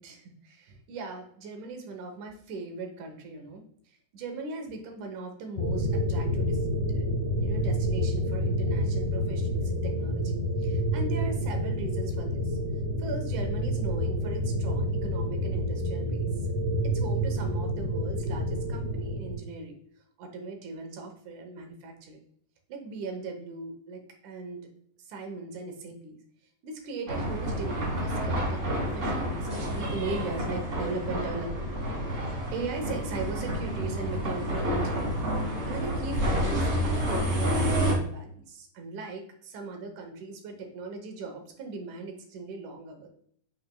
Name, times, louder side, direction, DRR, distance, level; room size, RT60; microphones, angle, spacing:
voice 1, 0.0-7.1 7.4-12.6 13.0-16.5 16.8-19.8 20.2-22.2 22.7-24.7 25.0-26.2 26.6-31.7 32.0-32.2 32.5-35.3 35.7-43.1, right 3 dB, 80° right, 4 dB, 2.5 m, -39 dB
sound 1, 5.6-19.3, equal, 80° left, 2.9 m, -28 dB
sound 2, 27.1-37.9, equal, 30° right, 1.6 m, -29 dB
7.4 x 5.9 x 2.2 m, 0.64 s
omnidirectional pair, 3.5 m